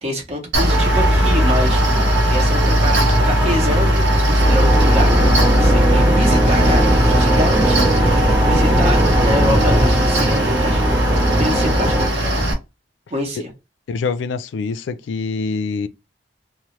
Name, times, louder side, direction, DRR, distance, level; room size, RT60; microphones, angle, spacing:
voice 1, 0.0-1.8 2.3-5.1 5.5-10.8 11.4-12.5 13.1-13.5, equal, 35° right, 0.9 m, -26 dB
Mechanical fan, 0.5-12.5, equal, 75° right, 0.7 m, -17 dB
sound 1, 0.7-12.1, right 1 dB, 10° right, 0.5 m, -20 dB
voice 2, 13.9-15.9, left 4 dB, 85° left, 0.3 m, -25 dB
3.0 x 2.0 x 3.0 m
head